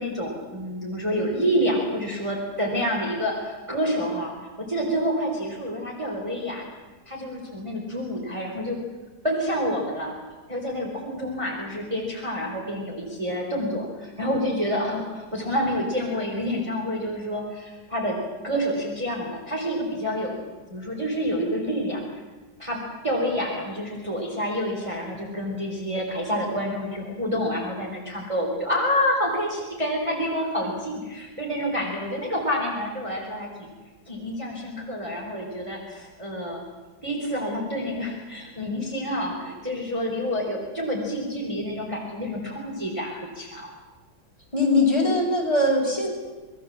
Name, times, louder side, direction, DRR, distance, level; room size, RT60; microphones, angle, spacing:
voice 1, 0.0-4.3 4.7-6.6 7.1-8.8 9.2-10.1 10.5-18.2 18.4-20.4 20.7-22.0 22.6-33.7 34.1-36.6 37.0-43.7, equal, 15° right, -2 dB, 4.2 m, -28 dB
voice 2, 44.5-46.1, left 2 dB, 15° left, -2 dB, 6.1 m, -21 dB
26.5 x 21.0 x 7.5 m, 1.2 s
omnidirectional pair, 2.0 m